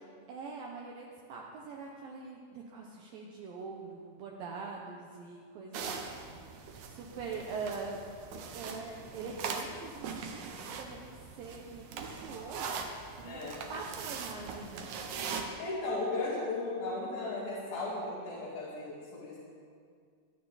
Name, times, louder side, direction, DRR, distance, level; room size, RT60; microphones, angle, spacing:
voice 1, 0.3-6.1 6.9-8.0 8.5-11.1 11.4-14.9, right 4 dB, 70° right, -1 dB, 2.3 m, -43 dB
sound 1, 5.7-15.4, right 5 dB, 90° right, 1.6 m, -41 dB
voice 2, 13.2-13.6 15.6-19.4, left 2 dB, 65° left, -8 dB, 3.9 m, -36 dB
21.5 x 9.4 x 4.1 m, 2.1 s
omnidirectional pair, 4.8 m